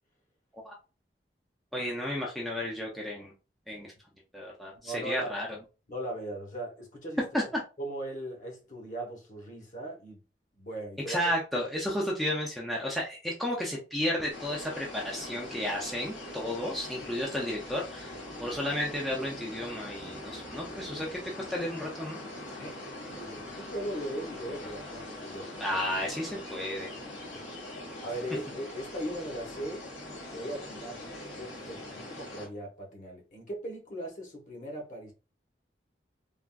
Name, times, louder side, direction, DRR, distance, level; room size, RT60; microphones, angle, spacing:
voice 1, 1.7-3.3 3.7-3.9 4.3-5.5 7.3-7.4 11.1-18.1 18.4-22.2 25.6-26.9, left 1 dB, ahead, 0.4 m, -32 dB
voice 2, 4.7-5.3 5.9-7.2 7.8-10.2 10.6-11.3 22.6-22.8 23.1-25.8 27.3-27.4 28.0-29.9 30.3-35.1, right 1 dB, 45° left, 1.0 m, -39 dB
sound 1, 14.3-32.5, left 1 dB, 85° left, 1.4 m, -42 dB
3.5 x 2.4 x 2.3 m
head